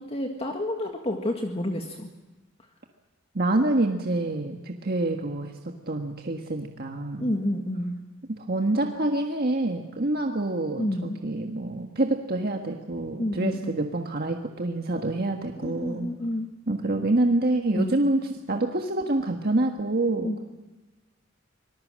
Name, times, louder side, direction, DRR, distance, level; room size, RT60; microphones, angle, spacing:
voice 1, 0.0-2.1 7.2-8.0 10.8-11.2 13.2-13.7 15.6-16.5 17.7-18.0 20.2-20.4, left 1 dB, 30° left, 2 dB, 1.9 m, -29 dB
voice 2, 3.3-5.5 5.9-7.3 8.5-16.1 16.7-18.2 18.5-20.4, right 2 dB, 50° right, 3 dB, 1.6 m, -26 dB
25.5 x 20.0 x 7.6 m, 1.1 s
head